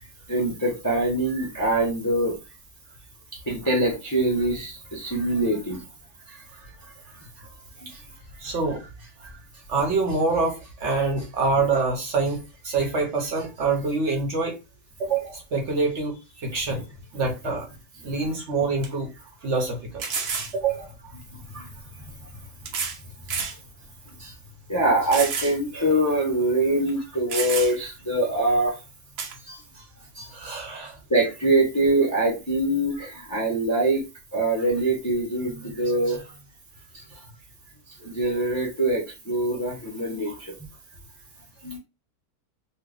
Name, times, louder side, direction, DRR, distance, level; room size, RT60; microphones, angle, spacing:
voice 1, 0.3-2.4 3.5-5.8 7.8-7.9 21.5-21.7 24.7-28.7 31.1-34.1 34.3-36.2 37.1-37.2 38.0-40.5 41.6-41.8, right 1 dB, 20° left, 0.5 m, -24 dB
voice 2, 6.3-7.5 7.9-8.0 8.4-9.4 9.7-14.6 15.0-16.9 17.1-17.7 18.0-19.1 19.4-20.0 20.5-20.9 23.4-23.5 24.2-24.3 29.5-29.9 30.1-31.0 36.9-37.0 38.0-38.1, right 3 dB, 55° right, 1.0 m, -27 dB
sound 1, 18.2-18.3 18.8-18.9 20.0-20.5 21.7-21.8 22.7-23.0 23.3-23.6 24.1-24.2 25.1-25.6 25.9-26.0 26.9-27.0 27.3-27.9 29.2-29.4, right 5 dB, 80° right, 1.3 m, -29 dB
2.8 x 2.3 x 3.5 m
omnidirectional pair, 1.6 m